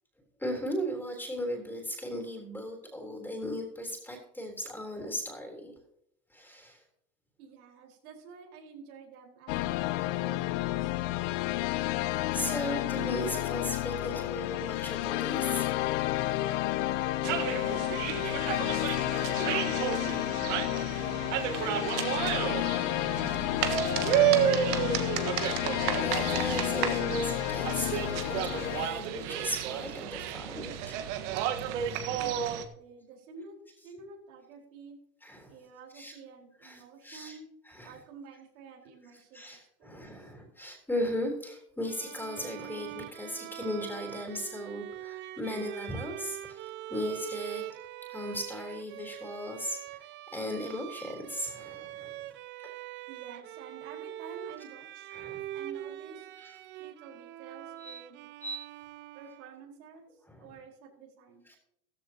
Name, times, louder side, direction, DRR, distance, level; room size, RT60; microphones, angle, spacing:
voice 1, 0.4-5.7 6.3-6.8 10.9-11.1 12.3-15.9 25.3-31.6 35.2-35.5 35.9-36.1 36.6-37.4 37.7-37.9 39.3-47.6 48.1-50.1 50.3-52.2 52.6-52.7 55.1-55.4 56.4-56.6 57.8-58.0 58.4-58.6 60.3-60.5 61.5-61.6, equal, 5° left, 1 dB, 3.7 m, -37 dB
voice 2, 7.4-11.5 17.8-18.8 19.1-20.9 21.4-24.9 32.1-35.0 35.5-37.5 37.8-40.3 53.1-55.1 55.5-56.3 56.8-58.3 59.1-61.5, right 4 dB, 70° right, -1 dB, 4.8 m, -50 dB
sound 1, 9.5-28.9, left 16 dB, 55° left, 0.7 m, -31 dB
sound 2, 17.2-32.7, right 10 dB, 50° right, 1.6 m, -31 dB
Bowed string instrument, 41.9-59.7, right 14 dB, 25° right, 0.5 m, -43 dB
14.5 x 14.0 x 2.9 m, 0.74 s
hypercardioid pair, 125°, 46 cm